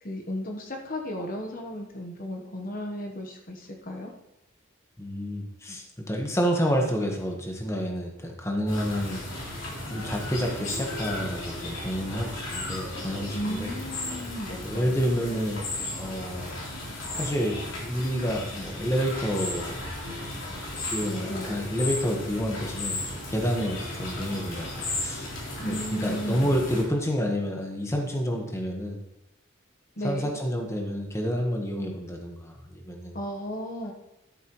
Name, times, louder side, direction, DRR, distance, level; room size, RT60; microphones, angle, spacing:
voice 1, 0.0-4.1 13.3-15.0 15.3-15.6 21.3-21.5 25.6-26.6 30.0-30.3 33.1-33.9, equal, 40° left, 2 dB, 1.1 m, -35 dB
voice 2, 5.0-9.2 9.9-13.7 14.6-19.8 20.9-25.3 25.6-29.0 30.0-33.1, equal, 15° left, 1 dB, 1.3 m, -29 dB
sound 1, 8.7-26.8, left 2 dB, 65° left, 3.4 m, -35 dB
12.5 x 7.1 x 3.1 m, 0.92 s
head